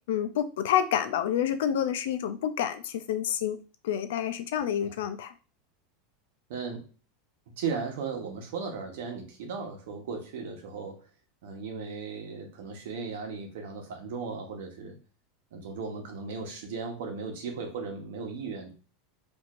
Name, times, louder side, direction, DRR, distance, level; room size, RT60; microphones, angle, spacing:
voice 1, 0.1-3.6 3.8-5.3, left 10 dB, 80° left, 10 dB, 0.5 m, -28 dB
voice 2, 6.5-6.9 7.6-11.1 11.4-15.0 15.5-18.7, right 5 dB, 70° right, 3 dB, 1.0 m, -36 dB
4.5 x 2.7 x 2.5 m, 0.35 s
supercardioid pair, 170°, 0 cm